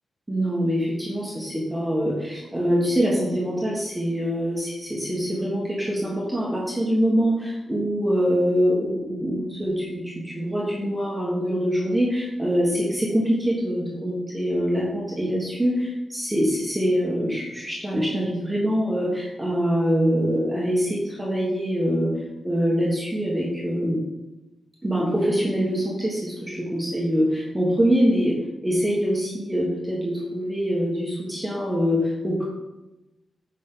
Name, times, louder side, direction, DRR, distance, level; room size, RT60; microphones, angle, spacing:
voice 1, 0.3-22.1 22.4-24.0 24.8-28.3 28.6-32.4, equal, 10° right, -5 dB, 1.6 m, -24 dB
8.6 x 5.4 x 3.9 m, 0.99 s
wide cardioid pair, 135°, 0 cm